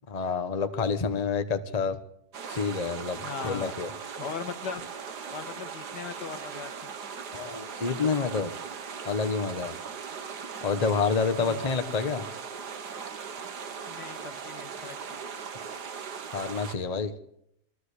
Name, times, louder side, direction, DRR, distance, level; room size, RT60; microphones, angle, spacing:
voice 1, 0.1-2.0 2.5-3.9 7.3-8.5 9.0-9.7 10.6-12.2 16.3-17.1, left 5 dB, 25° left, 9 dB, 1.1 m, -28 dB
sound 1, 2.3-16.8, right 6 dB, 75° right, 2.0 m, -39 dB
voice 2, 3.2-3.7 4.2-4.8 5.3-6.9 11.4-11.6 13.9-15.2, left 6 dB, 80° left, 9 dB, 2.2 m, -39 dB
22.5 x 15.0 x 8.3 m, 0.77 s
omnidirectional pair, 1.8 m